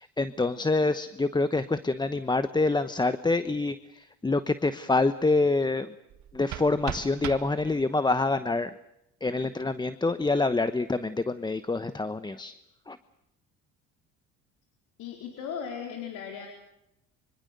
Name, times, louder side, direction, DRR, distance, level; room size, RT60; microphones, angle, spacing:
voice 1, 0.0-5.9 6.3-8.8 9.2-12.5 12.9-13.0, left 3 dB, 15° left, 12 dB, 1.0 m, -26 dB
sound 1, 6.1-8.1, right 12 dB, 65° right, 1.8 m, -39 dB
voice 2, 15.0-16.5, left 7 dB, 80° left, 3 dB, 4.3 m, -37 dB
25.5 x 24.5 x 6.7 m, 0.87 s
cardioid pair, 95°, 30 cm